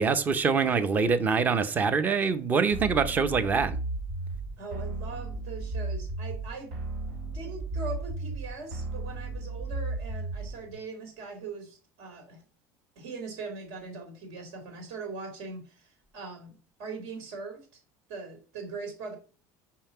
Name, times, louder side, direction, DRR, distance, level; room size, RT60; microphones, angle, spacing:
voice 1, 0.0-3.8, right 5 dB, 20° right, 0.6 m, -25 dB
sound 1, 2.7-10.7, right 2 dB, 85° right, 2.7 m, -35 dB
voice 2, 4.6-6.7 7.3-12.4 13.0-17.8 18.1-19.2, right 4 dB, 70° right, 2.6 m, -41 dB
5.6 x 5.5 x 5.6 m
cardioid pair, 175°, 8 cm